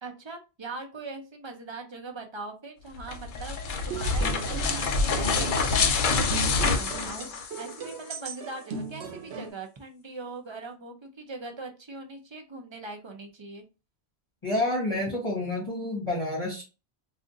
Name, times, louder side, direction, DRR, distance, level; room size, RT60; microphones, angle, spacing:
voice 1, 0.0-13.6, right 3 dB, 35° right, 4 dB, 0.5 m, -41 dB
sound 1, 3.0-7.9, left 4 dB, 60° left, 0.6 m, -26 dB
sound 2, 3.7-9.5, right 5 dB, 85° right, 0.9 m, -38 dB
voice 2, 14.4-16.6, left 1 dB, 30° left, -5 dB, 1.1 m, -29 dB
2.5 x 2.4 x 3.7 m, 0.30 s
omnidirectional pair, 1.1 m